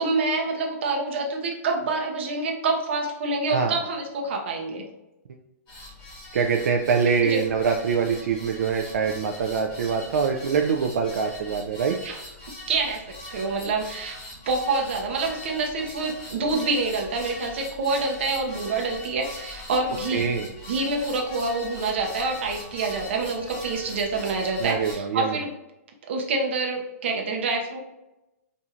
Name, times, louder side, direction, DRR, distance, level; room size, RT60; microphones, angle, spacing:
voice 1, 0.0-4.8 7.2-7.4 12.0-12.2 12.7-13.0 13.3-14.2 14.5-20.3 20.7-25.5 26.1-27.8, right 3 dB, 45° right, 1 dB, 0.7 m, -27 dB
sound 1, 5.7-25.0, left 1 dB, 15° left, 1.1 m, -41 dB
voice 2, 6.3-12.0 20.1-20.5 24.6-25.4, right 6 dB, 70° right, 2 dB, 0.3 m, -24 dB
4.3 x 2.6 x 2.4 m, 0.95 s
hypercardioid pair, 175°, 9 cm